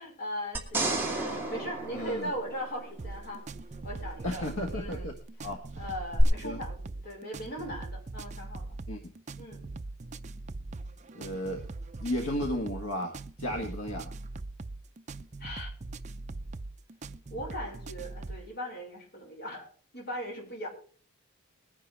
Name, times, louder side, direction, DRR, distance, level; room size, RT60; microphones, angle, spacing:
voice 1, 0.0-3.5 3.8-5.1 5.8-8.8 9.4-9.7 15.4-15.7 17.3-20.7, equal, 50° left, 0 dB, 5.3 m, -39 dB
sound 1, 0.5-3.0 6.2-6.3, right 2 dB, 10° right, 2.4 m, -31 dB
voice 2, 1.9-2.3 4.2-5.1 5.4-5.6 6.4-6.6 8.9-9.1 11.1-11.6 12.0-14.1, left 1 dB, 70° left, 2 dB, 1.6 m, -34 dB
sound 2, 3.0-18.5, right 2 dB, 35° right, 0.5 m, -41 dB
21.0 x 10.0 x 3.4 m, 0.44 s
head